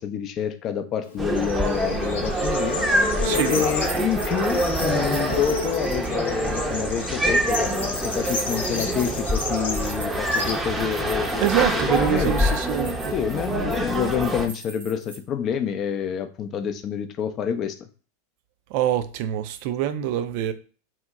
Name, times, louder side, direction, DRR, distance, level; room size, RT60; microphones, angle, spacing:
voice 1, 0.0-2.9 3.5-12.5 13.1-17.9, left 8 dB, 40° left, 0.4 m, -28 dB
Bird / Insect, 1.0-11.6, left 3 dB, 75° left, 0.7 m, -33 dB
sound 1, 1.2-14.5, right 1 dB, 10° right, 0.6 m, -25 dB
voice 2, 3.2-3.6 11.4-13.1 13.5-13.7 18.7-20.5, right 11 dB, 55° right, 0.4 m, -25 dB
sound 2, 3.3-6.0 7.5-15.2, right 2 dB, 80° right, 1.0 m, -39 dB
2.7 x 2.1 x 3.5 m
hypercardioid pair, 90°, 0 cm